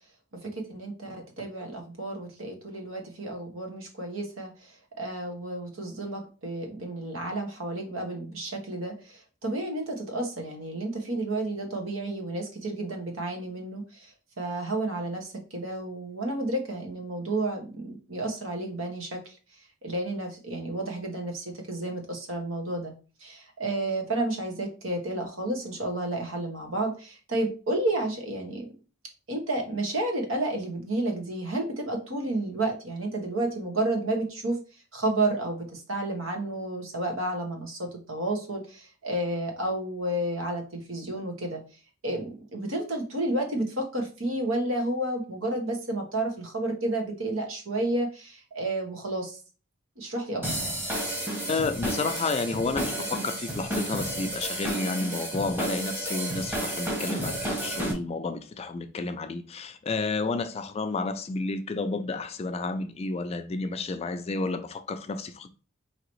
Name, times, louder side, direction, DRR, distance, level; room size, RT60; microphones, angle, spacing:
voice 1, 0.4-4.5 5.0-14.1 14.4-19.2 19.8-22.9 23.2-28.7 29.3-34.6 34.9-41.6 42.0-49.4 50.0-50.5, right 2 dB, 85° right, 1.2 m, -31 dB
sound 1, 50.4-57.9, right 1 dB, 10° right, 1.0 m, -31 dB
voice 2, 51.5-65.5, left 3 dB, 30° left, 0.3 m, -31 dB
4.8 x 2.9 x 3.1 m
head